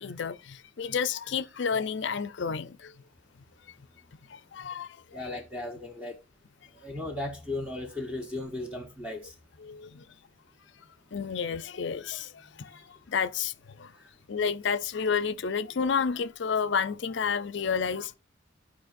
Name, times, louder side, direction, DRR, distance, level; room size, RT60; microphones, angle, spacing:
voice 1, 0.0-2.9 4.3-5.3 9.6-10.0 11.1-13.9 14.3-18.2, left 6 dB, 60° left, 0.5 m, -31 dB
voice 2, 5.1-6.2 6.8-9.3 12.7-12.8 14.0-14.1, left 2 dB, 5° right, 0.9 m, -36 dB
13.5 x 4.9 x 2.5 m
head